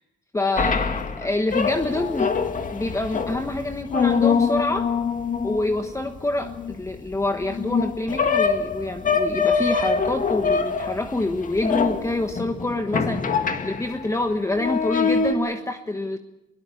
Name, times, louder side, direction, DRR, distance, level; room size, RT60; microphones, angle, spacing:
voice 1, 0.3-2.3 2.7-4.9 5.4-13.3 13.6-16.2, left 2 dB, 15° left, 6 dB, 1.3 m, -26 dB
sound 1, 0.6-14.1 14.5-15.3, left 5 dB, 40° left, 1.9 m, -24 dB
21.5 x 18.0 x 8.4 m, 0.93 s
cardioid pair, 90°, 20 cm